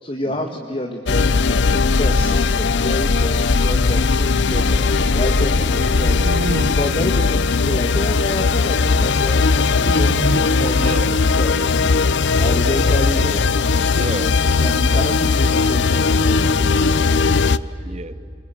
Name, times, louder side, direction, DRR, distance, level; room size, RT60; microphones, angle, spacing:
voice 1, 0.0-11.8 12.4-13.4 14.6-17.9, left 1 dB, 30° left, 3 dB, 1.6 m, -29 dB
sound 1, 1.1-17.6, left 4 dB, 70° left, 0.6 m, -18 dB
sound 2, 1.5-16.9, right 1 dB, 75° right, 2.8 m, -47 dB
sound 3, 5.3-6.7 7.3-7.9 8.2-9.2 9.8-10.4 10.9-11.2 12.3-13.2, right 2 dB, 55° right, 1.8 m, -29 dB
voice 2, 10.8-11.2 12.5-13.5 13.9-14.9 16.6-17.0 17.8-18.1, right 2 dB, 35° right, 14 dB, 1.0 m, -33 dB
27.5 x 21.5 x 9.1 m, 2.7 s
head